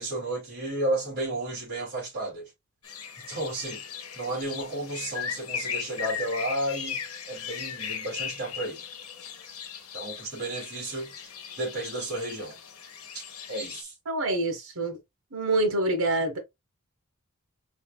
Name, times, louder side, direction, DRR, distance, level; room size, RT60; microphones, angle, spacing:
voice 1, 0.0-2.5 3.3-3.8 4.1-7.0 7.3-8.8 9.9-11.1 11.6-12.6 13.1-13.2 13.5-13.9, right 1 dB, 45° right, 2.8 m, -32 dB
sound 1, 2.8-13.8, left 7 dB, 80° left, 1.2 m, -38 dB
voice 2, 14.1-15.0 15.3-16.4, right 2 dB, 80° right, 1.5 m, -26 dB
4.4 x 3.9 x 2.3 m
head